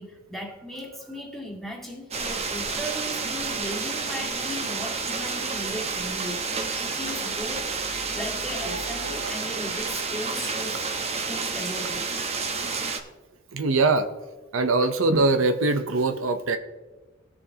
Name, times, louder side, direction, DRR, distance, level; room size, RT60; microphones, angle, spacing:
voice 1, 0.0-6.5 6.8-10.8 11.3-12.0, equal, ahead, -3 dB, 2.0 m, -37 dB
sound 1, 2.1-13.0, right 4 dB, 30° right, 0.9 m, -30 dB
voice 2, 8.6-9.4 13.5-14.1 14.5-16.6, right 3 dB, 80° right, 8 dB, 0.7 m, -23 dB
19.0 x 6.9 x 2.9 m, 1.2 s
head